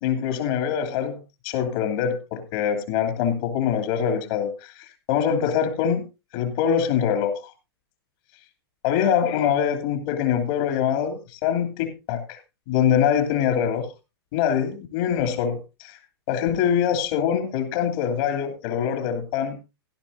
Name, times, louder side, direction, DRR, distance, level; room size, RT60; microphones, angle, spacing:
voice 1, 0.0-6.1 6.3-7.5 8.8-12.4 12.7-13.9 14.3-16.0 16.3-19.6, left 8 dB, 55° left, 6 dB, 2.6 m, -24 dB
16.5 x 11.5 x 2.6 m, 0.27 s
hypercardioid pair, 105°, 14 cm